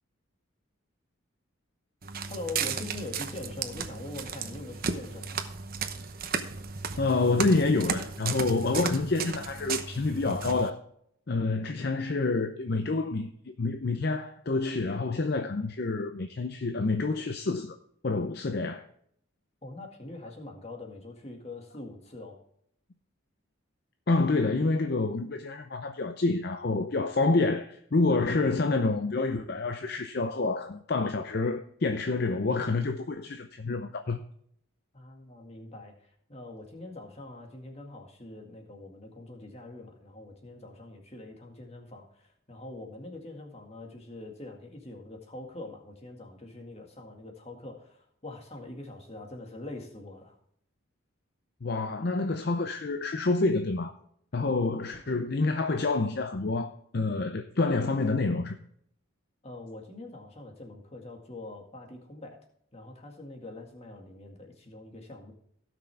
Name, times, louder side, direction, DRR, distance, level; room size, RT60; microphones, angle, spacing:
Walk footsteps, 2.0-10.7, right 5 dB, 45° right, 0.9 m, -34 dB
voice 1, 2.3-5.4 19.6-22.4 34.9-50.3 59.4-62.4 62.7-65.3, left 2 dB, 30° left, 1.9 m, -43 dB
voice 2, 7.0-10.8 11.3-13.3 13.6-17.8 18.0-18.8 24.1-34.2 51.6-53.9 54.3-58.6, left 3 dB, 50° left, 0.6 m, -28 dB
17.0 x 6.1 x 3.4 m
head